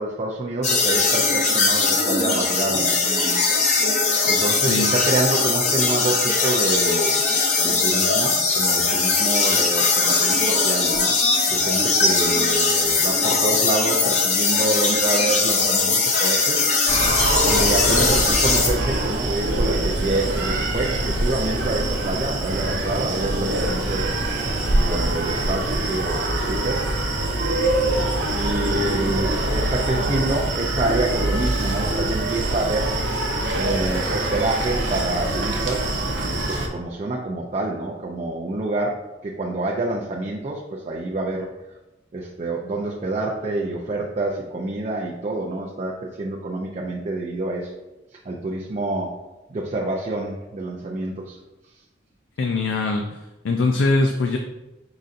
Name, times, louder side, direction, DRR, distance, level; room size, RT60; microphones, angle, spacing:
voice 1, 0.0-3.4 4.3-7.3 7.6-16.6 17.4-24.2 24.7-27.0 28.3-33.0 33.5-41.5 42.1-47.7 48.3-49.1 49.5-51.4, right 2 dB, 35° right, -2 dB, 0.4 m, -27 dB
sound 1, 0.6-18.7, left 3 dB, 35° left, 0.8 m, -20 dB
Screaming, 16.9-36.7, right 1 dB, 65° right, 0.8 m, -24 dB
voice 2, 52.4-53.2 53.4-54.4, left 3 dB, 80° left, 3 dB, 0.4 m, -22 dB
5.3 x 3.9 x 2.5 m, 1.0 s
head